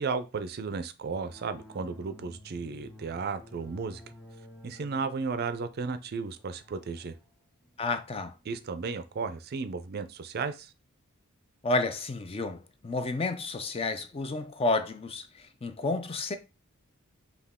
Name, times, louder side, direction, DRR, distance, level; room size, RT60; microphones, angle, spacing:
voice 1, 0.0-4.0 4.6-7.2 8.5-10.7, right 4 dB, 45° right, 0.4 m, -34 dB
sound 1, 1.1-9.3, left 1 dB, 5° left, 1.3 m, -54 dB
voice 2, 7.8-8.4 11.6-16.4, left 3 dB, 25° left, 0.4 m, -31 dB
5.6 x 2.3 x 3.6 m
head